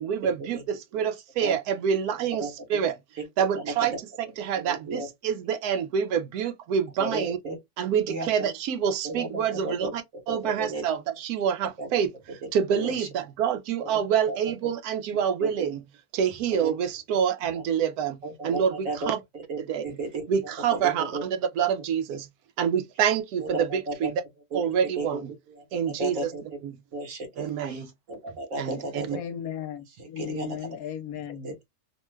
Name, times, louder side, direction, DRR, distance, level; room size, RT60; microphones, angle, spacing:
voice 1, 0.0-3.0 3.4-3.9 4.4-7.4 7.8-10.0 10.3-12.1 12.5-15.8 16.1-19.2 19.7-20.0 20.3-22.3 22.6-24.2 24.5-25.3 25.7-26.3 26.6-26.8 27.4-27.9 28.6-29.2, right 8 dB, 90° right, 1.1 m, -27 dB
voice 2, 2.4-2.8 3.2-3.3 3.5-3.9 4.5-5.1 7.0-7.6 8.1-8.5 9.0-9.9 10.3-10.8 11.8-12.0 12.8-13.1 13.8-14.0 14.3-14.4 15.4-15.5 16.5-16.7 17.5-17.6 18.2-20.3 20.7-21.2 23.4-24.1 24.5-25.2 25.6-26.6 26.9-29.2 30.2-30.6 31.4-31.5, right 2 dB, 65° right, 1.3 m, -34 dB
voice 3, 29.1-31.6, left 9 dB, 75° left, 1.1 m, -36 dB
3.0 x 2.2 x 3.1 m
omnidirectional pair, 1.6 m